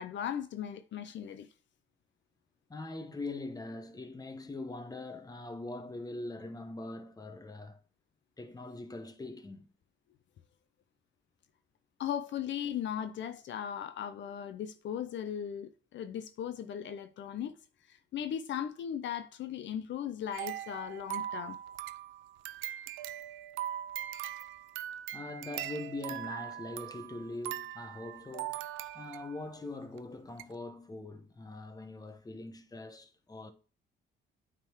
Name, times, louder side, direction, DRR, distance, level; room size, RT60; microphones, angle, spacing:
voice 1, 0.0-1.5 12.0-17.6 17.9-21.6, left 9 dB, 65° left, 0.6 m, -37 dB
voice 2, 2.7-7.8 8.4-9.7 25.1-28.6 28.9-33.5, left 2 dB, 20° left, 1.0 m, -42 dB
sound 1, 20.3-29.5 30.0-30.1 30.4-30.5, right 12 dB, 90° right, 0.4 m, -41 dB
8.9 x 3.8 x 4.5 m
cardioid pair, 90°, 20 cm